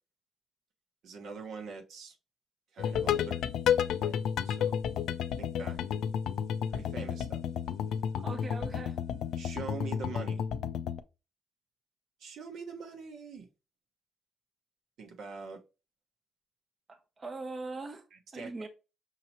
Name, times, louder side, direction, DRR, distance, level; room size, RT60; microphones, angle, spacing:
voice 1, 1.0-2.1 2.7-3.5 4.0-4.8 5.4-5.8 6.7-7.4 9.4-10.4 12.2-13.5 15.0-15.6 18.1-18.7, right 5 dB, 75° right, 1.1 m, -44 dB
sound 1, 2.8-11.0, left 8 dB, 75° left, 0.4 m, -31 dB
voice 2, 8.2-9.0 16.9-18.1 18.3-18.7, right 3 dB, 35° right, 0.7 m, -40 dB
5.7 x 2.8 x 2.9 m
cardioid pair, 90°, 0 cm